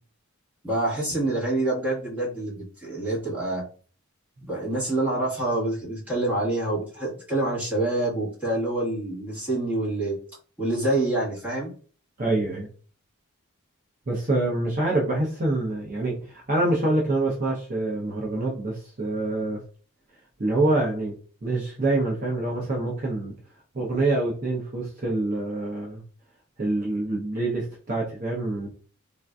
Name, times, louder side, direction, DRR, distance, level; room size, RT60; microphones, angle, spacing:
voice 1, 0.6-3.6 4.4-10.2 10.6-11.7, right 2 dB, 5° right, -8 dB, 1.4 m, -26 dB
voice 2, 12.2-12.7 14.1-19.6 20.4-21.1 21.4-23.3 23.7-26.0 26.6-28.7, right 2 dB, 40° right, -3 dB, 0.6 m, -26 dB
3.7 x 2.5 x 2.3 m, 0.41 s
head